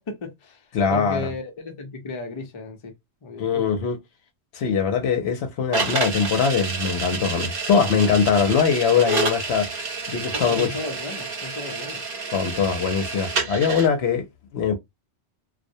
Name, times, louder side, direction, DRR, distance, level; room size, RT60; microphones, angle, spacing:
voice 1, 0.0-2.9 3.2-3.7 10.3-12.0, left 3 dB, 35° left, 0.5 m, -35 dB
voice 2, 0.7-1.3 3.4-4.0 4.5-9.7 10.1-10.7 12.3-14.3 14.5-14.8, left 6 dB, 70° left, 0.8 m, -22 dB
sound 1, 5.7-13.9, right 4 dB, 55° right, 1.0 m, -29 dB
2.3 x 2.1 x 2.7 m
omnidirectional pair, 1.2 m